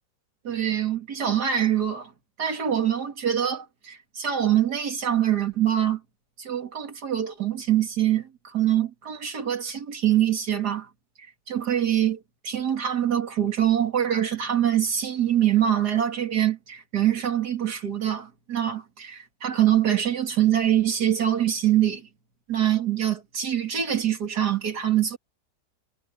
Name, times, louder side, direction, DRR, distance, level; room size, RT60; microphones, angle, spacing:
voice 1, 0.4-2.1 2.4-6.0 6.4-10.9 11.5-22.0 22.5-25.2, right 10 dB, 65° right, 2.8 m, -24 dB
omnidirectional pair, 1.9 m